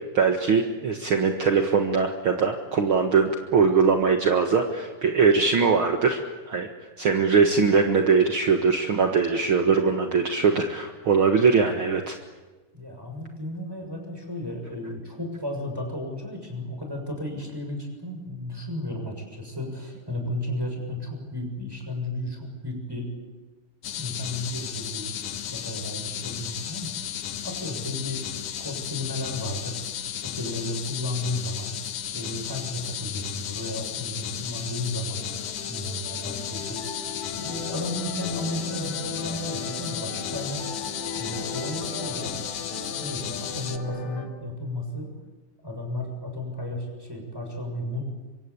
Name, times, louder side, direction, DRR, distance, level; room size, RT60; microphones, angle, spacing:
voice 1, 0.1-6.2 6.5-6.7 7.0-12.1, right 5 dB, 55° right, 4 dB, 1.4 m, -21 dB
voice 2, 12.7-23.1 24.0-25.1 25.5-27.1 27.4-28.2 28.6-35.2 35.7-40.6 41.1-42.3 42.9-45.1 45.6-48.0, left 1 dB, 5° right, 2 dB, 6.4 m, -33 dB
sound 1, 23.8-43.8, left 9 dB, 70° left, 1.5 m, -34 dB
sound 2, 35.1-44.3, left 4 dB, 50° left, 4.1 m, -37 dB
25.5 x 24.5 x 8.6 m, 1.2 s
omnidirectional pair, 4.6 m